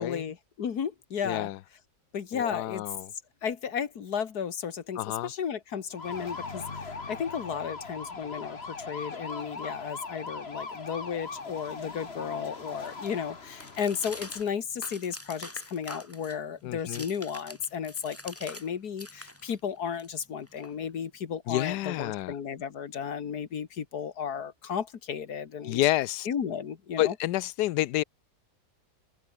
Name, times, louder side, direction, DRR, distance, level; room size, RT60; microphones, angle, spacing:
voice 1, 0.0-1.5 2.1-2.8 3.4-25.8 26.3-27.2, left 7 dB, 70° left, 2.1 m, -34 dB
voice 2, 1.2-1.6 2.3-3.1 5.0-5.3 16.6-17.0 21.5-22.4 25.6-26.3 27.0-28.0, left 15 dB, 90° left, 1.2 m, -29 dB
sound 1, 5.9-14.4, left 4 dB, 40° left, 2.3 m, -40 dB
sound 2, 11.3-18.7 18.9-21.2, left 1 dB, 10° left, 2.2 m, -46 dB
omnidirectional pair, 1.7 m